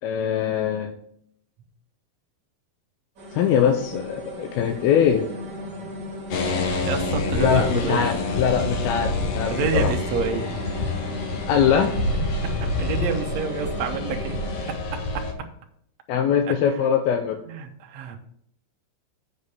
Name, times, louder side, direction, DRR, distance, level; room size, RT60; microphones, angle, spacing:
voice 1, 0.0-0.9 3.3-5.3 7.4-9.9 11.5-12.0 16.1-17.4, left 8 dB, 85° left, 4 dB, 2.5 m, -22 dB
sound 1, 3.2-14.7, equal, 35° right, 2.2 m, -36 dB
sound 2, 6.3-15.3, left 3 dB, 65° left, 1.6 m, -27 dB
voice 2, 6.9-8.1 9.5-10.5 12.8-14.4 14.9-15.2 16.5-16.6 17.5-18.2, right 6 dB, 70° right, 4 dB, 1.6 m, -28 dB
8.0 x 5.2 x 6.8 m, 0.69 s
omnidirectional pair, 4.4 m